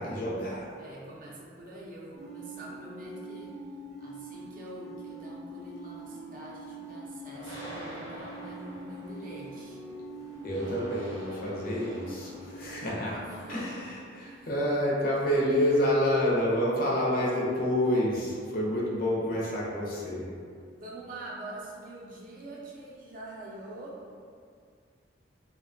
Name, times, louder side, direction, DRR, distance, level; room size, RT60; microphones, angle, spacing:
voice 1, 0.0-0.7 10.4-13.1 13.5-20.3, equal, 50° left, -4 dB, 0.5 m, -28 dB
voice 2, 0.8-3.6 4.0-9.8 12.6-12.8 13.1-13.7 14.2-14.5 20.7-24.2, right 1 dB, 45° right, -4 dB, 0.5 m, -45 dB
sound 1, 2.1-13.3, right 2 dB, ahead, 0.6 m, -44 dB
sound 2, 7.3-13.8, equal, 85° left, 1.0 m, -47 dB
2.7 x 2.1 x 2.5 m, 2.2 s
head